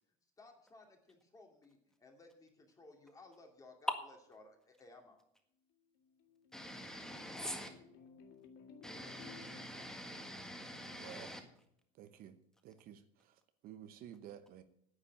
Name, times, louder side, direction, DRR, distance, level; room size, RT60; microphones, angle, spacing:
voice 1, 0.4-5.2, left 2 dB, 20° left, 3 dB, 2.5 m, -59 dB
sound 1, 5.7-11.3, left 5 dB, 70° left, 1.9 m, -60 dB
voice 2, 6.5-7.7 8.8-11.4, equal, 5° left, 5 dB, 1.7 m, -46 dB
voice 3, 12.0-12.4 12.6-13.3 13.6-14.6, right 10 dB, 55° right, 10 dB, 0.9 m, -52 dB
9.9 x 8.5 x 8.4 m, 0.72 s
cardioid pair, 145°, 18 cm